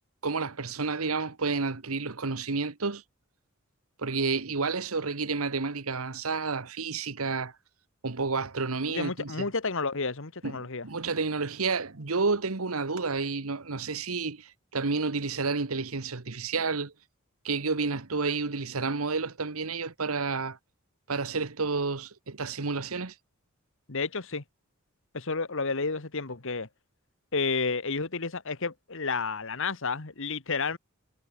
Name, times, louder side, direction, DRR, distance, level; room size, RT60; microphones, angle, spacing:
voice 1, 0.2-3.0 4.0-7.5 8.0-9.5 10.4-16.9 17.4-20.6 21.1-23.1, right 4 dB, 90° right, 1.4 m, -30 dB
voice 2, 8.9-10.9 23.9-24.4 25.1-26.7 27.3-30.8, left 4 dB, 65° left, 1.7 m, -31 dB
head